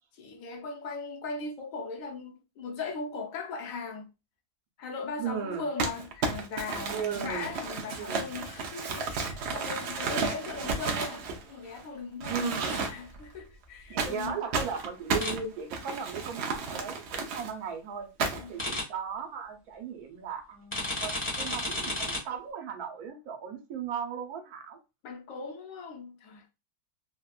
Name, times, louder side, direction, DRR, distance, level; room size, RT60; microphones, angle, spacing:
voice 1, 0.1-4.1 4.8-14.4 18.4-18.7 25.0-26.4, left 4 dB, 65° left, 1.0 m, -38 dB
voice 2, 5.2-5.7 6.9-7.5 8.0-8.3 12.3-12.8 13.9-18.1 18.5-24.8, right 7 dB, 80° right, 1.2 m, -37 dB
Crumpling crinkling, 5.8-11.8 12.2-13.2 14.0-17.5 18.2-18.6, right 4 dB, 65° right, 0.7 m, -33 dB
sound 1, 15.2-15.3 18.6-18.8 20.7-22.2, left 1 dB, 10° left, 0.8 m, -32 dB
3.4 x 2.1 x 2.2 m
omnidirectional pair, 1.6 m